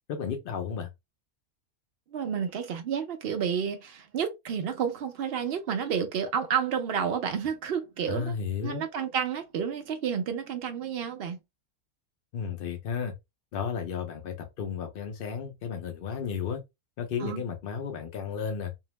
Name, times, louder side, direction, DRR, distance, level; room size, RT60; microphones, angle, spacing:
voice 1, 0.1-0.9 8.0-8.8 12.3-13.1 13.5-16.6 17.0-18.7, left 6 dB, 65° left, 0.5 m, -33 dB
voice 2, 2.1-8.4 8.6-11.4 17.2-17.4, right 7 dB, 70° right, 0.5 m, -30 dB
2.7 x 2.0 x 3.0 m
omnidirectional pair, 1.5 m